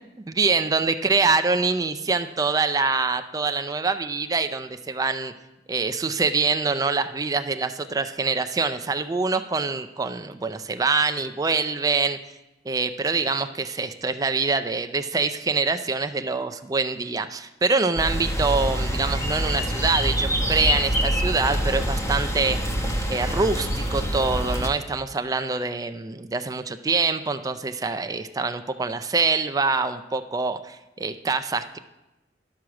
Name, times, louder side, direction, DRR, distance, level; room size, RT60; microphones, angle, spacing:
voice 1, 0.3-5.3 5.7-12.2 12.7-22.6 23.1-31.8, right 4 dB, 20° right, 8 dB, 0.4 m, -25 dB
sound 1, 18.0-24.7, equal, 15° left, 0.9 m, -25 dB
11.5 x 6.2 x 5.9 m, 0.98 s
head